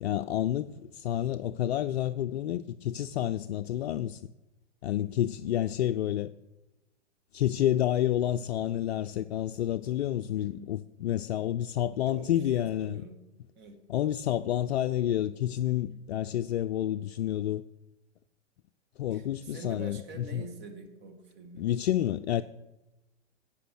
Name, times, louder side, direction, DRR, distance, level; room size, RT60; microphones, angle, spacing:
voice 1, 0.0-4.2 4.8-6.3 7.3-13.0 13.9-17.6 19.0-20.5 21.6-22.4, left 12 dB, 65° left, 0.5 m, -29 dB
voice 2, 12.1-13.2 13.6-13.8 15.8-16.0 19.1-21.7, right 3 dB, 30° right, 2.0 m, -46 dB
10.0 x 8.6 x 6.2 m
figure-of-eight pair, 105°, 35 cm